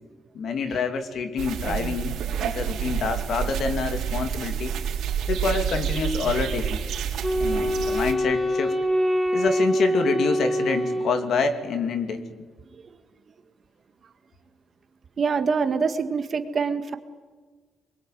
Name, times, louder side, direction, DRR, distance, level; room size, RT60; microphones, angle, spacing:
voice 1, 0.3-2.1 2.4-4.8 5.3-6.8 7.4-8.7 9.3-12.4, left 5 dB, 60° left, 8 dB, 2.6 m, -27 dB
sound 1, 1.4-8.1, right 9 dB, 90° right, 3.9 m, -29 dB
Wind instrument woodwind instrument, 7.2-11.7, equal, 10° left, 2.6 m, -25 dB
voice 2, 15.2-16.9, right 5 dB, 40° right, 8 dB, 1.8 m, -25 dB
25.5 x 22.0 x 9.3 m, 1.5 s
cardioid pair, 150°, 0 cm